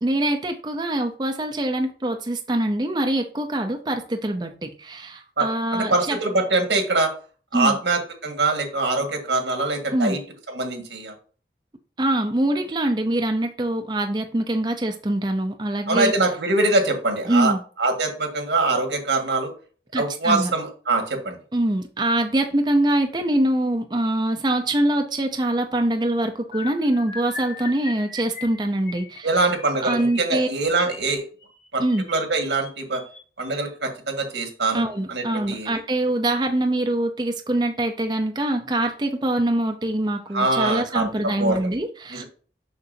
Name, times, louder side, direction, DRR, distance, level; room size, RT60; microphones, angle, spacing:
voice 1, 0.0-6.2 7.5-7.8 9.9-10.2 12.0-16.1 17.3-17.6 19.9-20.5 21.5-29.4 29.8-30.5 31.8-32.0 34.7-42.2, right 1 dB, 25° right, 5 dB, 0.6 m, -24 dB
voice 2, 5.4-7.1 7.5-10.2 10.5-11.1 15.9-17.5 17.8-19.5 19.9-21.4 29.2-31.2 31.7-31.8 32.1-33.0 33.4-35.8 40.3-41.7 42.1-42.2, right 2 dB, 90° right, 4 dB, 1.7 m, -23 dB
sound 1, 26.5-33.7 34.4-34.7 35.0-35.2 35.5-35.7, left 4 dB, 45° left, 1.7 m, -40 dB
6.7 x 6.0 x 2.7 m, 0.39 s
head